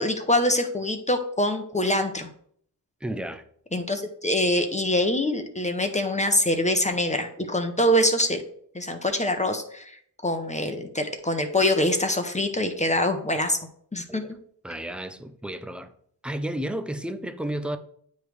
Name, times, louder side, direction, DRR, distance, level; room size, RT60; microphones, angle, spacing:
voice 1, 0.0-2.3 3.7-8.4 8.7-13.6 13.9-14.2, left 1 dB, 15° left, 0.8 m, -24 dB
voice 2, 3.0-3.4 14.1-14.3 14.6-15.9 16.2-17.8, right 1 dB, ahead, 0.5 m, -32 dB
9.1 x 3.0 x 3.4 m
supercardioid pair, 60°, 47 cm